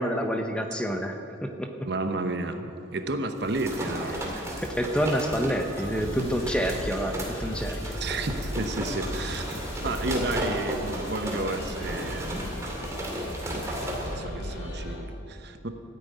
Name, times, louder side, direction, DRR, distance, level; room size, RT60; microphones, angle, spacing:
voice 1, 0.0-1.9 4.3-8.0 9.5-9.6, equal, 5° left, 4 dB, 0.8 m, -28 dB
voice 2, 1.8-4.4 6.1-6.5 8.0-12.4 13.5-15.7, right 2 dB, 55° right, 7 dB, 1.0 m, -32 dB
sound 1, 3.4-14.2, right 1 dB, 15° right, 2.2 m, -34 dB
sound 2, 5.8-15.0, equal, 85° left, 3.0 m, -37 dB
14.0 x 9.1 x 9.3 m, 2.7 s
head